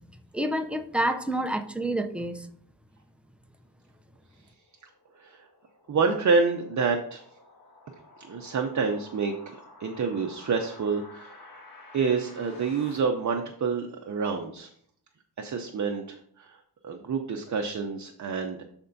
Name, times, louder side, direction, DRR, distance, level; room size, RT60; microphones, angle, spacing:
voice 1, 0.3-2.5, right 1 dB, 5° right, 6 dB, 0.4 m, -28 dB
sound 1, 4.3-13.0, left 2 dB, 55° left, 1.8 m, -52 dB
voice 2, 5.2-5.5 5.9-7.2 8.2-11.6 11.9-14.7 15.4-18.6, right 5 dB, 45° right, 3 dB, 0.6 m, -28 dB
12.5 x 4.4 x 2.6 m, 0.64 s
wide cardioid pair, 160°, 40 cm